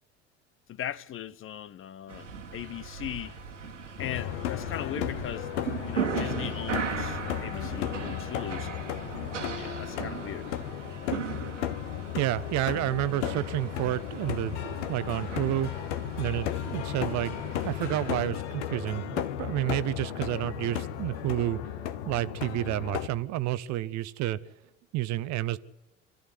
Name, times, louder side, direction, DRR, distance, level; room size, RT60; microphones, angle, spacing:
voice 1, 0.7-2.3 2.5-3.3 4.0-5.5 5.8-8.7 9.6-10.5, left 11 dB, 35° left, 0.9 m, -38 dB
sound 1, 2.1-18.2, right 6 dB, 85° right, 2.2 m, -38 dB
sound 2, 4.0-23.1, left 11 dB, 70° left, 1.4 m, -34 dB
voice 2, 12.1-15.7 16.2-21.6 22.1-24.4 24.9-25.6, right 15 dB, 50° right, 1.0 m, -30 dB
25.0 x 14.0 x 9.8 m
figure-of-eight pair, 65°, 36 cm